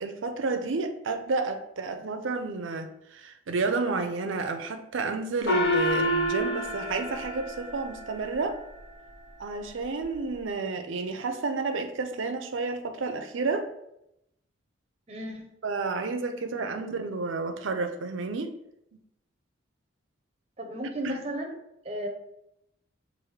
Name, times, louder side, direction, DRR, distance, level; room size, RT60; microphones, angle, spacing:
voice 1, 0.0-8.6 9.4-13.7 15.6-18.5 21.0-21.2, right 3 dB, 70° right, 6 dB, 0.5 m, -31 dB
Gong, 5.5-8.4, equal, 55° left, 0.7 m, -28 dB
voice 2, 15.1-15.4 20.6-21.6 21.8-22.1, right 1 dB, 30° right, 2 dB, 0.6 m, -34 dB
6.3 x 2.6 x 3.2 m, 0.81 s
head